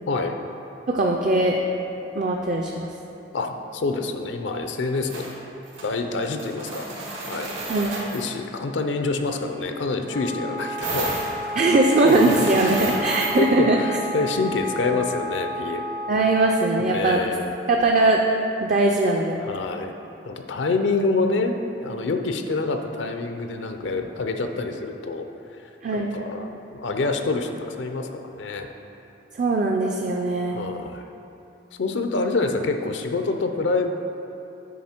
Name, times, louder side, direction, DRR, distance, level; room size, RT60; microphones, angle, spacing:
voice 1, 0.1-0.4 3.3-5.2 5.8-6.9 7.2-7.5 8.1-11.5 12.0-12.7 13.0-15.8 16.8-17.5 19.4-19.9 20.2-25.2 25.6-28.7 30.5-31.0 31.8-33.9, left 3 dB, 75° left, 6 dB, 0.5 m, -27 dB
voice 2, 0.9-1.6 2.2-2.9 7.7-8.0 11.6-13.8 16.1-17.3 17.7-18.2 18.6-19.4 25.8-26.1 29.3-30.6, right 2 dB, 40° right, 1 dB, 0.4 m, -20 dB
sound 1, 5.1-5.3 5.6-5.9 6.2-8.2 10.8-13.5, right 2 dB, 85° right, 1.9 m, -32 dB
Wind instrument woodwind instrument, 10.1-16.7, equal, 25° left, 0.4 m, -32 dB
9.3 x 4.9 x 4.4 m, 2.8 s
head